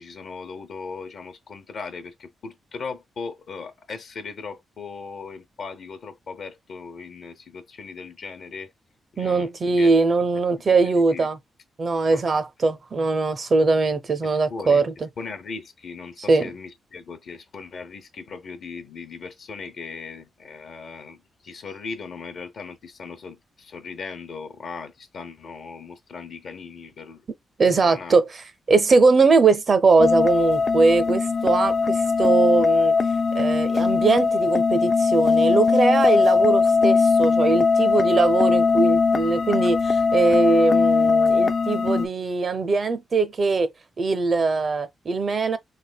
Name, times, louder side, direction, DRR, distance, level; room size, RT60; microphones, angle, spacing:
voice 1, 0.0-8.7 9.1-10.3 10.6-10.8 11.1-11.3 12.1-12.2 14.2-14.8 15.2-21.2 21.4-27.2 27.7-28.2, left 4 dB, 60° left, 0.7 m, -38 dB
voice 2, 9.2-11.4 11.8-15.1 16.3-16.5 27.6-32.9 33.3-43.7 44.0-45.6, right 4 dB, 35° right, 0.5 m, -21 dB
sound 1, 30.0-42.1, left 4 dB, 35° left, 0.3 m, -20 dB
3.3 x 3.2 x 2.2 m
wide cardioid pair, 145°, 0 cm